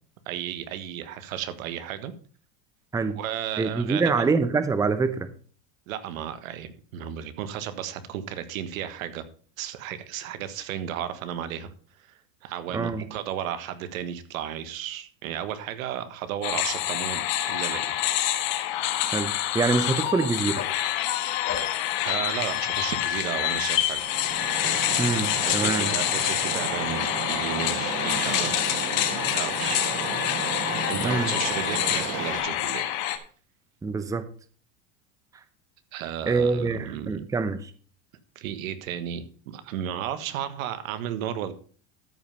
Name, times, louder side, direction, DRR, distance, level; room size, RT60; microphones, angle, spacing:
voice 1, 0.3-2.1 3.1-4.3 5.9-9.2 9.6-11.7 12.4-17.9 18.3-18.4 22.0-24.0 25.5-28.6 29.3-29.8 30.8-32.9 35.9-37.3 38.3-41.5, right 10 dB, 80° right, 12 dB, 1.5 m, -34 dB
voice 2, 3.6-5.3 12.7-13.0 19.1-20.6 25.0-25.9 31.0-31.3 33.8-34.2 36.3-37.7, right 4 dB, 10° right, 12 dB, 0.7 m, -25 dB
sound 1, 16.4-33.2, left 13 dB, 60° left, 1.4 m, -27 dB
sound 2, 20.5-23.2 23.6-25.6, left 7 dB, 30° left, 3.2 m, -40 dB
sound 3, 23.9-32.4, right 5 dB, 35° right, 3.0 m, -33 dB
13.0 x 5.6 x 5.4 m, 0.43 s
supercardioid pair, 130°, 41 cm